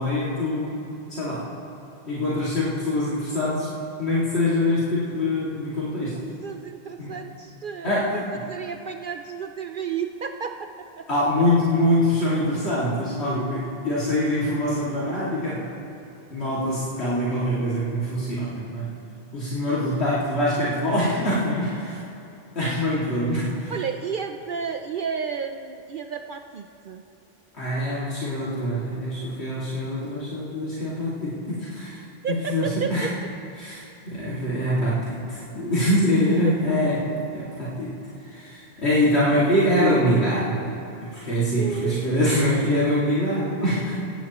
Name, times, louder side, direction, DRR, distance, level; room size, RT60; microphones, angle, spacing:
voice 1, 0.0-1.5 2.1-3.7 4.0-6.2 7.0-7.2 7.8-8.4 11.1-15.7 16.3-18.9 19.3-22.0 22.6-23.7 27.5-32.0 32.5-33.1 33.6-37.9 38.2-40.7 41.1-43.9, left 1 dB, 80° left, -10 dB, 2.6 m, -24 dB
voice 2, 6.1-11.0 23.7-27.0 32.2-33.1 36.4-36.5 41.6-42.1, right 6 dB, 60° right, 6 dB, 0.7 m, -32 dB
17.5 x 16.5 x 3.0 m, 2.8 s
omnidirectional pair, 1.1 m